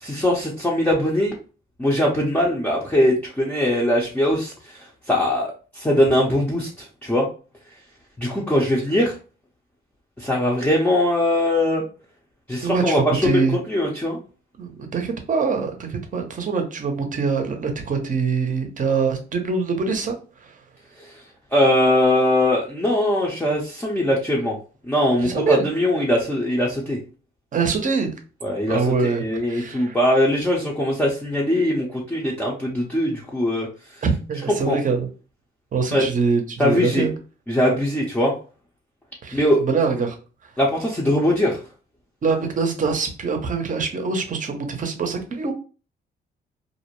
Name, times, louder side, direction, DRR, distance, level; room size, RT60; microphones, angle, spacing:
voice 1, 0.0-1.3 1.8-4.5 5.1-6.7 7.0-7.3 8.2-9.1 10.2-11.8 12.5-13.4 13.7-14.2 21.5-24.6 24.9-27.0 28.4-33.7 34.5-34.8 35.9-36.1 36.6-37.0 37.5-38.3 39.3-39.6 40.6-41.6, left 1 dB, 10° left, -3 dB, 0.6 m, -21 dB
voice 2, 12.6-13.6 14.6-20.2 25.2-25.7 27.5-28.1 28.7-30.0 34.0-35.1 35.7-37.1 39.2-40.1 42.2-45.5, right 5 dB, 40° right, 5 dB, 0.7 m, -24 dB
2.5 x 2.0 x 2.9 m, 0.36 s
cardioid pair, 90°, 20 cm